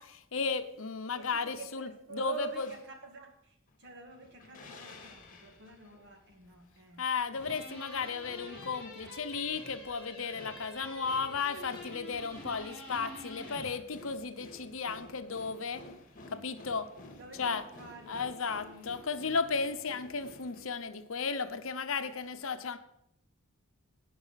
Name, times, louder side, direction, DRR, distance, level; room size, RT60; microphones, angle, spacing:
voice 1, 0.0-2.7 7.0-15.8 16.3-16.9 17.4-17.6 18.1-22.8, left 5 dB, 65° left, 9 dB, 0.8 m, -34 dB
voice 2, 1.1-7.1 17.2-18.9, right 4 dB, 55° right, 3 dB, 2.0 m, -48 dB
sound 1, 2.4-2.8 3.7-20.6, left 2 dB, 40° left, 1.9 m, -53 dB
sound 2, 7.4-13.8, left 1 dB, 5° left, 4.7 m, -47 dB
16.0 x 5.5 x 5.7 m, 0.76 s
head